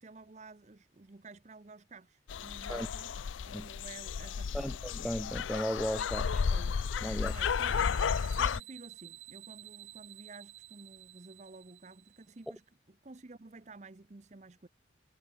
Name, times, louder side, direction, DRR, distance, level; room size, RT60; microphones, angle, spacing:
voice 1, 0.0-4.8 6.2-6.8 7.1-8.1 8.4-14.7, right 3 dB, 35° right, 0.7 m, -52 dB
sound 1, 2.3-8.6, left 6 dB, 85° left, 0.5 m, -33 dB
voice 2, 4.5-6.3 7.0-7.3, equal, ahead, 0.5 m, -35 dB
sound 2, 6.5-12.5, right 16 dB, 90° right, 1.4 m, -53 dB
head